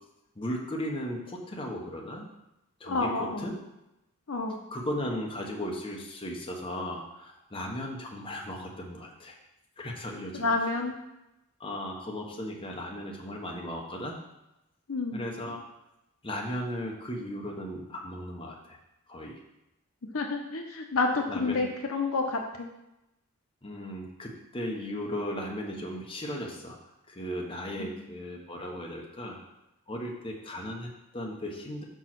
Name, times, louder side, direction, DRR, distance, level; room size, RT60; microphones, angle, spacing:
voice 1, 0.3-2.3 2.8-3.5 4.7-9.4 9.8-10.5 11.6-14.1 15.1-15.6 16.2-18.8 19.1-19.4 21.3-21.7 23.6-26.8 27.1-29.4 29.9-31.8, equal, 25° left, -1 dB, 1.0 m, -36 dB
voice 2, 2.9-3.5 4.3-4.6 10.3-11.0 14.9-15.3 20.1-22.7 27.8-27.9, left 3 dB, 65° left, 3 dB, 0.8 m, -29 dB
5.6 x 4.7 x 5.9 m, 0.90 s
head